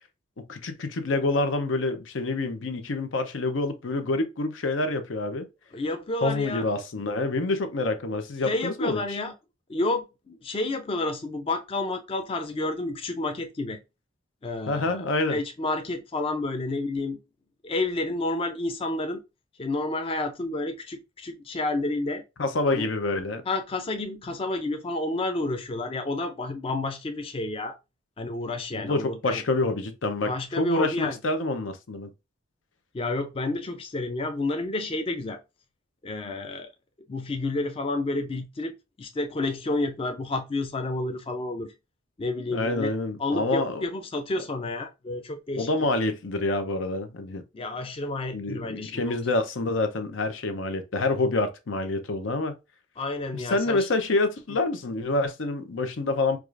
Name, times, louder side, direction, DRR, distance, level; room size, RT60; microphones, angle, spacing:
voice 1, 0.5-5.5 6.2-9.2 14.7-15.4 22.4-23.4 28.7-32.1 42.5-43.8 45.6-47.4 48.3-52.5 53.3-56.4, left 2 dB, 80° left, 0.6 m, -27 dB
voice 2, 5.7-6.7 8.4-9.3 9.7-13.8 14.4-17.2 17.6-19.2 19.6-22.2 22.7-22.9 23.5-27.8 28.2-29.4 30.2-31.2 32.9-35.4 36.0-36.7 37.1-41.7 42.2-42.9 43.2-45.9 47.5-49.2 53.0-53.9, left 2 dB, 30° left, 0.4 m, -30 dB
4.7 x 2.4 x 2.4 m
head